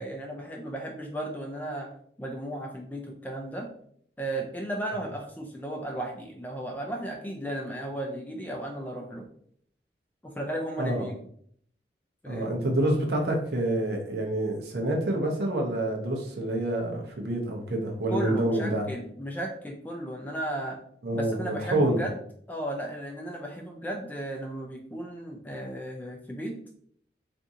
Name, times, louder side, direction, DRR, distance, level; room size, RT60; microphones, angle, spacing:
voice 1, 0.0-1.9 2.2-3.7 4.2-9.3 10.2-11.2 12.2-12.6 18.1-20.8 21.1-22.1 22.5-26.5, right 1 dB, 10° left, 1 dB, 0.3 m, -35 dB
voice 2, 12.3-18.8 21.0-22.0, right 1 dB, 70° right, 1 dB, 0.7 m, -27 dB
3.6 x 2.5 x 2.7 m, 0.63 s
head